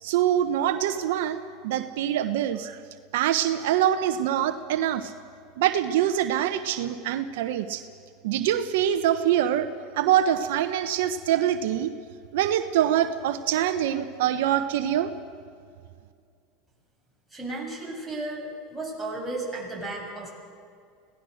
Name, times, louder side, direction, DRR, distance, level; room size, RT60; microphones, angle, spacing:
voice 1, 0.0-2.8 3.1-5.1 5.6-7.8 8.2-9.7 10.0-11.9 12.3-15.1, right 11 dB, 75° right, 9 dB, 1.0 m, -24 dB
voice 2, 17.3-20.3, right 2 dB, 5° right, -3 dB, 7.0 m, -34 dB
25.5 x 17.5 x 6.6 m, 2.2 s
supercardioid pair, 115°, 0 cm